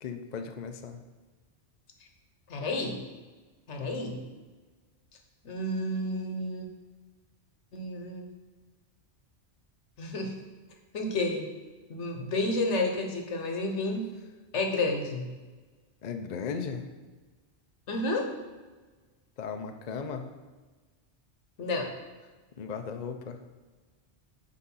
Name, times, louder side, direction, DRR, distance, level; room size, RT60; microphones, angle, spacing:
voice 1, 0.0-1.0 16.0-16.9 19.4-20.3 22.5-23.4, left 6 dB, 50° left, 6 dB, 0.6 m, -36 dB
voice 2, 2.5-3.0 3.7-4.2 5.4-6.7 7.7-8.3 10.0-10.4 10.9-11.5 11.9-14.1 14.5-15.2 17.9-18.3 21.6-21.9, left 2 dB, 85° left, 3 dB, 1.3 m, -30 dB
6.7 x 5.0 x 5.5 m, 1.3 s
omnidirectional pair, 1.2 m